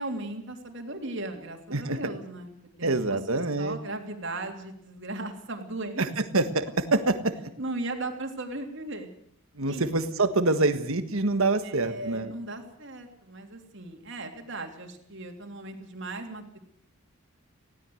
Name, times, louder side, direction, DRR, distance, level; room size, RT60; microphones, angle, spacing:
voice 1, 0.0-6.0 7.6-9.1 9.7-9.9 11.6-16.6, right 2 dB, 55° right, 4 dB, 3.1 m, -37 dB
voice 2, 2.8-3.8 6.0-7.5 9.5-12.4, right 2 dB, 70° right, 9 dB, 1.6 m, -26 dB
20.0 x 16.5 x 7.9 m, 0.70 s
head